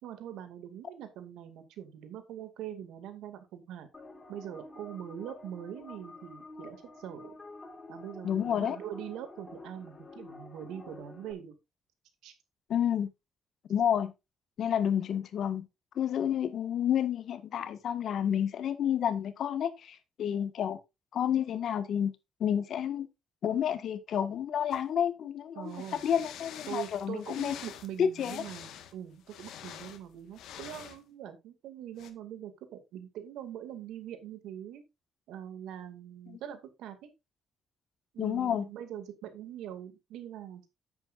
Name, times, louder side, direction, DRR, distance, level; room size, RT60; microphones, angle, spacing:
voice 1, 0.0-3.9 4.3-7.3 7.9-11.5 12.2-12.3 25.6-26.0 26.7-34.8 35.3-37.1 38.1-40.7, right 10 dB, 90° right, 2.2 m, -43 dB
sound 1, 3.9-11.3, left 3 dB, 25° left, 2.9 m, -49 dB
voice 2, 8.2-8.8 12.7-13.1 13.7-14.1 14.6-15.7 15.9-20.8 21.1-22.1 22.4-23.1 23.4-27.5 28.0-28.4 36.3-36.4 38.2-38.7, left 9 dB, 65° left, 1.5 m, -30 dB
sound 2, 24.7-24.8 25.7-31.0 32.0-32.1, left 10 dB, 85° left, 1.5 m, -47 dB
9.8 x 8.5 x 2.5 m
cardioid pair, 90°, 0 cm